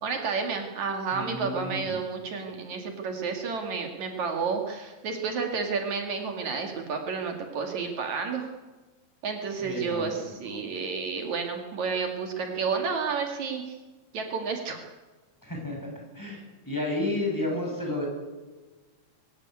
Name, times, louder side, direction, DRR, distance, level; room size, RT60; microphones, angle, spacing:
voice 1, 0.0-8.5 9.2-13.8 14.1-14.8, right 5 dB, 75° right, 3 dB, 3.6 m, -31 dB
voice 2, 1.1-2.0 9.6-10.1 10.5-10.6 15.4-15.9 16.1-18.1, left 1 dB, 5° left, 0 dB, 7.3 m, -32 dB
23.0 x 17.0 x 9.6 m, 1.3 s
omnidirectional pair, 3.3 m